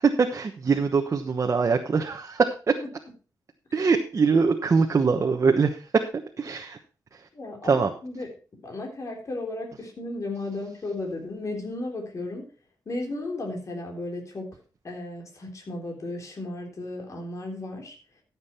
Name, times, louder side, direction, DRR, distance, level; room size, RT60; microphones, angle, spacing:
voice 1, 0.0-2.7 3.7-6.0 6.4-6.8 7.1-7.3 7.6-7.9, right 5 dB, 45° right, 4 dB, 1.1 m, -23 dB
voice 2, 7.3-8.3 8.6-12.5 12.9-14.5 14.8-18.0, left 2 dB, 50° left, 1 dB, 3.6 m, -34 dB
14.0 x 7.4 x 4.4 m, 0.37 s
cardioid pair, 95°, 7 cm